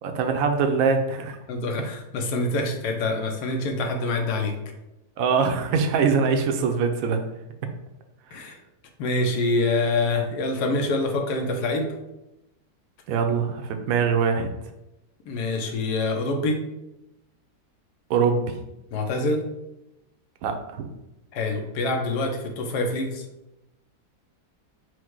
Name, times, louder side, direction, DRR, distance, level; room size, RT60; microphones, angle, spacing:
voice 1, 0.0-1.4 5.2-7.2 13.1-14.5 18.1-18.4 20.4-20.9, right 5 dB, 70° right, 6 dB, 0.9 m, -23 dB
voice 2, 1.5-4.5 8.3-8.6 9.0-11.9 15.3-16.6 18.9-19.4 21.3-23.2, left 2 dB, 80° left, 3 dB, 1.2 m, -25 dB
4.6 x 2.1 x 4.4 m, 0.91 s
omnidirectional pair, 1.8 m